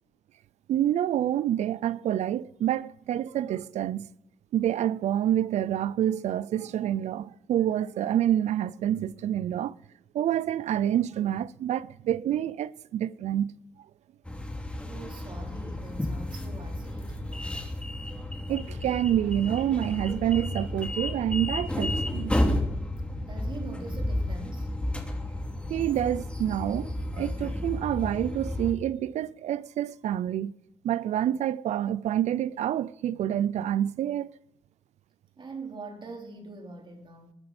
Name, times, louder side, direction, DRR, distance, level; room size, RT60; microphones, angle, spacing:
voice 1, 0.7-4.1 4.5-9.7 10.1-13.5 18.5-22.3 25.7-30.5 30.8-34.3, right 11 dB, 85° right, 0.5 m, -27 dB
sound 1, 14.3-28.7, left 1 dB, 10° left, 2.9 m, -32 dB
voice 2, 14.9-17.6 23.2-24.7 35.4-37.3, right 3 dB, 45° right, 3.7 m, -43 dB
21.0 x 12.0 x 4.3 m
cardioid pair, 80°, 11 cm